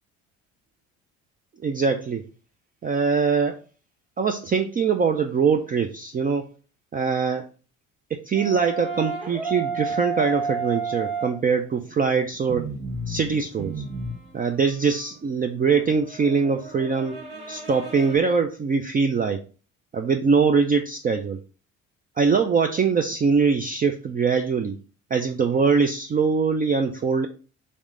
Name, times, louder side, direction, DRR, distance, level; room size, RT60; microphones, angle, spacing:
voice 1, 1.6-2.2 2.8-3.6 4.2-6.5 6.9-7.4 8.1-12.7 13.1-13.8 14.3-17.2 17.5-19.4 19.9-21.4 22.2-24.8 25.1-27.3, right 5 dB, 25° right, 5 dB, 0.4 m, -22 dB
sound 1, 8.4-11.6 12.3-18.2, right 4 dB, 70° right, 1.5 m, -32 dB
3.5 x 3.1 x 3.6 m, 0.37 s
supercardioid pair, 70°, 35 cm